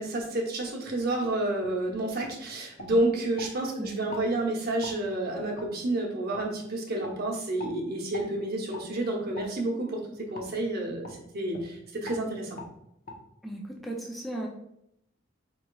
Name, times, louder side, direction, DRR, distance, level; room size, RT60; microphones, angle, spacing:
voice 1, 0.0-10.0 10.3-12.6, right 1 dB, 50° right, 0 dB, 0.8 m, -30 dB
sound 1, 1.6-1.8 2.2-2.4 2.8-3.5 4.1-4.3 4.8-5.0 5.6-5.7 6.3-6.5 7.0-7.2 7.6-7.8 8.1-8.3 8.7-8.9 9.3-9.5 10.3-10.5 11.0-11.2 11.5-11.7 12.0-12.2 12.6-12.7 13.1-13.2, left 2 dB, 45° left, 0.7 m, -42 dB
voice 2, 13.4-14.5, right 1 dB, ahead, -2 dB, 0.3 m, -36 dB
4.7 x 3.0 x 2.3 m, 0.79 s
head